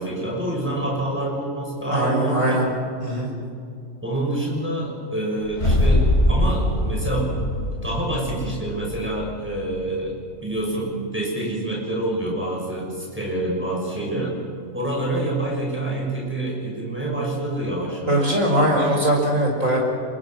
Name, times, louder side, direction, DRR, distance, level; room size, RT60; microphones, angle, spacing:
voice 1, 0.0-2.6 4.0-7.3 7.8-10.2 10.4-14.4 14.7-18.3, right 1 dB, 10° right, -3 dB, 6.7 m, -27 dB
voice 2, 1.8-2.7 3.0-3.3 18.1-19.8, right 1 dB, 75° right, -1 dB, 6.5 m, -20 dB
sound 1, 5.5-9.8, left 1 dB, 50° left, 5.8 m, -22 dB
27.5 x 23.0 x 6.1 m, 2.4 s
omnidirectional pair, 1.4 m